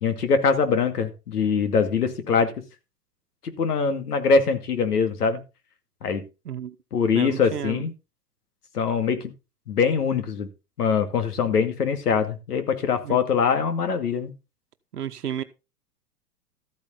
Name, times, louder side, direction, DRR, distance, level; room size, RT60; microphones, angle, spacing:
voice 1, 0.0-2.5 3.4-5.4 6.0-6.2 6.9-7.9 8.7-9.3 9.7-10.5 10.8-14.3, left 5 dB, 75° left, 2.4 m, -23 dB
voice 2, 6.4-6.7 7.1-7.8 13.0-13.2 14.9-15.4, right 10 dB, 80° right, 1.1 m, -31 dB
13.5 x 8.7 x 3.9 m
hypercardioid pair, 105°, 46 cm